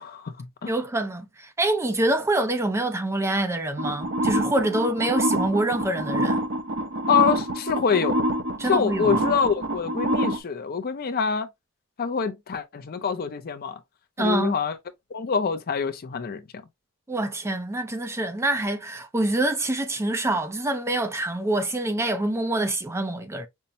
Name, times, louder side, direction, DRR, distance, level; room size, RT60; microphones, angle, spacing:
voice 1, 0.0-0.7 7.1-8.2 8.6-11.5 12.0-13.8 14.2-14.8 15.1-16.4, left 6 dB, 45° left, 0.5 m, -25 dB
voice 2, 0.7-6.4 8.6-9.1 14.2-14.5 17.1-23.5, right 1 dB, 10° right, 0.4 m, -26 dB
sound 1, 3.8-10.4, right 1 dB, 60° right, 1.0 m, -26 dB
5.4 x 2.1 x 2.7 m
head